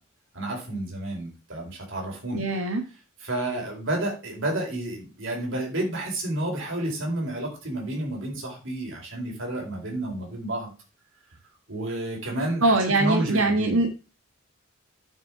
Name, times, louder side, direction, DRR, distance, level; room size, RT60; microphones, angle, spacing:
voice 1, 0.3-2.4 3.2-10.7 11.7-13.8, right 1 dB, 65° right, 0 dB, 4.5 m, -30 dB
voice 2, 2.3-2.8 12.6-14.0, right 2 dB, 90° right, 4 dB, 1.3 m, -22 dB
9.4 x 5.3 x 6.0 m, 0.33 s
head